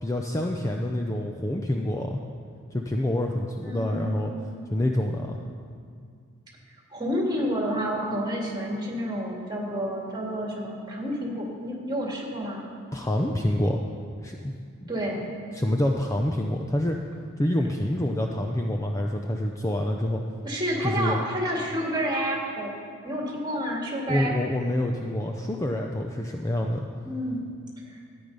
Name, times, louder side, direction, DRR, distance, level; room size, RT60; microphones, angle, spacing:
voice 1, 0.0-2.2 2.7-4.3 4.7-5.4 12.9-13.8 14.2-14.5 14.8-14.9 15.5-17.0 17.4-20.2 20.8-21.2 24.1-26.9, left 1 dB, 15° left, 2 dB, 0.5 m, -27 dB
voice 2, 3.6-4.2 6.9-12.6 14.9-15.3 20.4-22.8 23.0-24.3 27.0-27.5 27.8-27.9, equal, 20° right, -1 dB, 2.0 m, -29 dB
13.5 x 8.8 x 5.4 m, 2.2 s
head